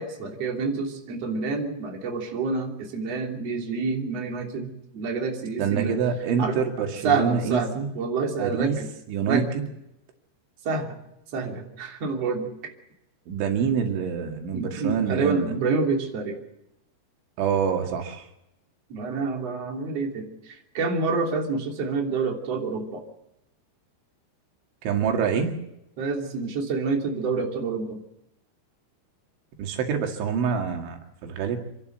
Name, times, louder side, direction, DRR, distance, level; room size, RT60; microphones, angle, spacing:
voice 1, 0.0-6.0 6.4-6.6 7.0-8.9 9.2-9.4 10.7-10.9 11.3-12.5 14.5-16.4 18.9-23.0 26.0-28.0, right 4 dB, 40° right, 1 dB, 3.7 m, -28 dB
voice 2, 5.6-7.9 8.4-8.8 9.1-9.6 13.3-15.5 17.4-18.2 24.8-25.5 29.6-31.6, right 7 dB, 90° right, 3 dB, 4.6 m, -26 dB
27.5 x 12.0 x 7.9 m, 0.84 s
omnidirectional pair, 5.2 m